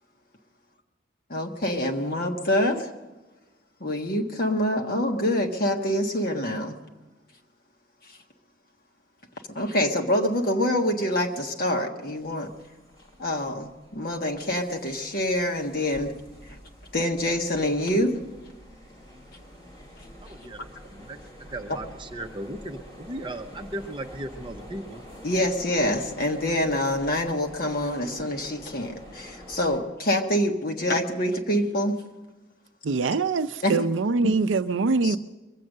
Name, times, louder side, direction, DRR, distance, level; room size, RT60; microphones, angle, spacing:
voice 1, 1.3-2.9 3.8-6.8 8.0-8.2 9.5-12.5 13.2-16.1 16.4-16.6 16.9-18.2 20.3-20.4 21.7-21.8 25.2-32.0 33.6-33.9 35.0-35.2, left 1 dB, 50° left, 1.4 m, -26 dB
sound 1, 12.2-29.8, equal, 25° left, 3.2 m, -47 dB
voice 2, 20.2-20.6 20.9-25.0, right 1 dB, 25° right, 0.7 m, -37 dB
voice 3, 32.8-35.2, right 4 dB, 75° right, 0.5 m, -23 dB
22.5 x 7.7 x 6.5 m
head